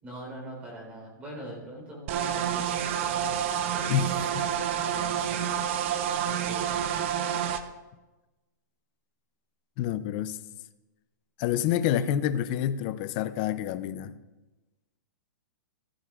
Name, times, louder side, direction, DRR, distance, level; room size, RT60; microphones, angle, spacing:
voice 1, 0.0-5.4 6.2-7.1, right 1 dB, 15° right, 3.8 m, -44 dB
sound 1, 2.1-7.6, right 9 dB, 40° right, 0.7 m, -28 dB
voice 2, 3.9-4.5 9.8-10.4 11.4-14.2, left 10 dB, 30° left, 0.4 m, -28 dB
15.0 x 14.0 x 2.4 m
hypercardioid pair, 170°, 10 cm